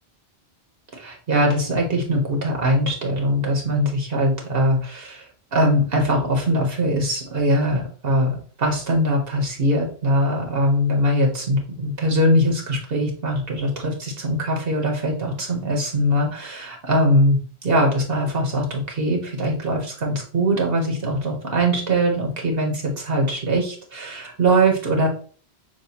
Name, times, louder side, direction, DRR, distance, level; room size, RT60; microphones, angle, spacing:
voice 1, 0.9-5.3 5.5-25.1, equal, 65° right, 1 dB, 1.2 m, -21 dB
6.3 x 2.3 x 2.8 m, 0.43 s
omnidirectional pair, 1.1 m